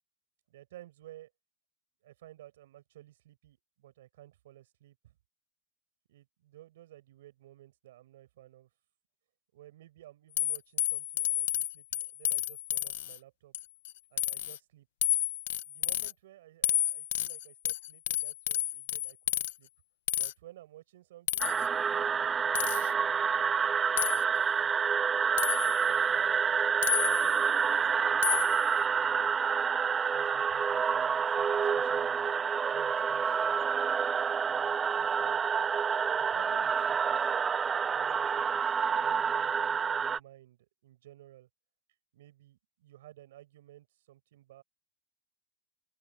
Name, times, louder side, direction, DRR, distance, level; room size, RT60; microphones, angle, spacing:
voice 1, 0.5-1.3 2.0-5.1 6.1-8.7 9.5-13.5 14.1-14.9 15.7-19.7 20.1-25.1 25.6-29.4 30.1-32.3 32.7-33.9 34.5-35.4 36.1-37.4 37.9-41.5 42.1-44.6, right 14 dB, 85° right, 7.5 m, -55 dB
sound 1, 10.4-13.2 13.5-13.9 14.2-14.6 15.0-16.1 16.6-19.5 20.1-20.3 21.3-21.7 22.5-22.9 24.0-24.2 25.4-25.8 26.8-27.4 28.2-28.6, left 13 dB, 85° left, 1.3 m, -31 dB
sound 2, 21.4-40.2, right 6 dB, 15° right, 0.4 m, -28 dB
open air
supercardioid pair, 165°, 0 cm